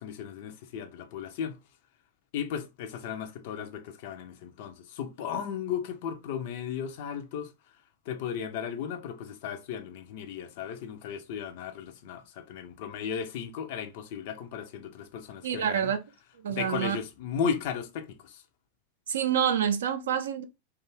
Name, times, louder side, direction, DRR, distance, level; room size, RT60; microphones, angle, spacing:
voice 1, 0.0-1.6 2.3-7.5 8.1-15.9 16.5-18.4, left 7 dB, 50° left, 0.4 m, -35 dB
voice 2, 15.4-16.0 16.4-17.0 19.1-20.4, right 8 dB, 65° right, 0.4 m, -27 dB
2.5 x 2.3 x 2.9 m
figure-of-eight pair, 90°, 0 cm